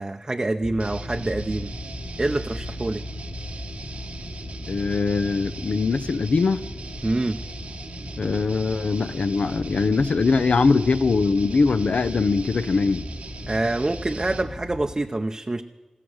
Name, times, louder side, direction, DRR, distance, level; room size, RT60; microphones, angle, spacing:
voice 1, 0.0-1.7 2.2-3.0 7.0-7.4 13.5-15.6, right 2 dB, 30° right, 5 dB, 0.6 m, -26 dB
sound 1, 0.6-15.0, left 1 dB, 35° left, 1.5 m, -37 dB
sound 2, 0.8-14.5, right 4 dB, 90° right, 1.2 m, -41 dB
voice 2, 4.7-6.6 8.2-13.1, left 4 dB, 70° left, 12 dB, 0.5 m, -22 dB
15.0 x 13.5 x 6.3 m, 1.3 s
wide cardioid pair, 65°, 2 cm